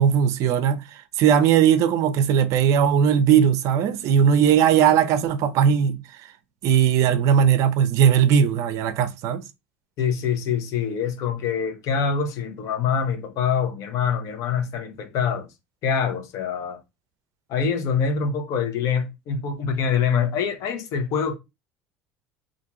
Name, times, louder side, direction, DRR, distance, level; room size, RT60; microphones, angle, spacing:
voice 1, 0.0-6.0 6.6-9.4, right 8 dB, 60° right, 0.4 m, -19 dB
voice 2, 10.0-15.5 15.8-16.8 17.5-21.4, left 6 dB, 60° left, 0.7 m, -25 dB
2.5 x 2.3 x 2.9 m
hypercardioid pair, 75°, 6 cm